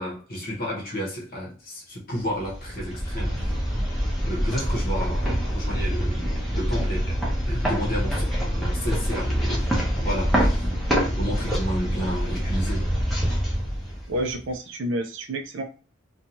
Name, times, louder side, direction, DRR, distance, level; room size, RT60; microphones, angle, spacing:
voice 1, 0.0-3.8 4.3-6.3 6.5-7.2 7.5-9.7 10.0-10.7 11.2-12.9, equal, 45° left, 0.8 m, -32 dB
sound 1, 2.4-14.4, equal, ahead, 0.7 m, -25 dB
voice 2, 14.1-15.6, right 1 dB, 60° right, 0.4 m, -29 dB
2.6 x 2.3 x 2.9 m
head